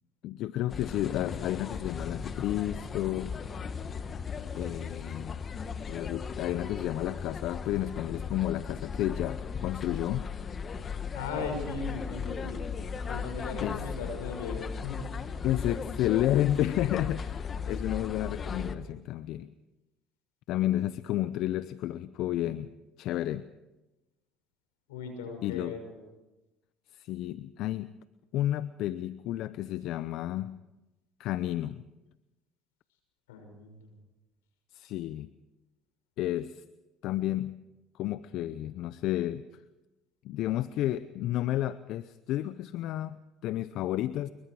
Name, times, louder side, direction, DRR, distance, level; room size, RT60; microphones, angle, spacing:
voice 1, 0.2-3.4 4.5-5.4 5.9-10.3 13.6-13.8 15.4-19.5 20.5-22.7 23.0-23.5 25.4-25.7 26.9-27.9 28.3-30.6 31.2-31.8 34.7-35.3 36.2-36.6 37.0-37.6 38.0-39.5 40.2-44.3, left 13 dB, 65° left, 15 dB, 0.6 m, -31 dB
sound 1, 0.7-18.8, left 5 dB, 40° left, 1.5 m, -37 dB
voice 2, 11.1-12.6 13.1-15.1 24.9-26.0 33.3-33.9, left 4 dB, 90° left, 4 dB, 6.2 m, -38 dB
26.5 x 22.5 x 4.9 m, 1.0 s
supercardioid pair, 75°, 0 cm